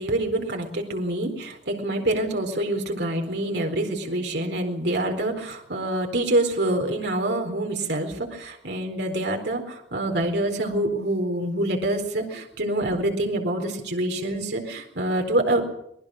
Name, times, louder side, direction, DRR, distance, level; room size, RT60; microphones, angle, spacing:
voice 1, 0.0-15.7, right 1 dB, 65° right, 3 dB, 4.2 m, -26 dB
26.0 x 20.5 x 6.4 m, 0.73 s
head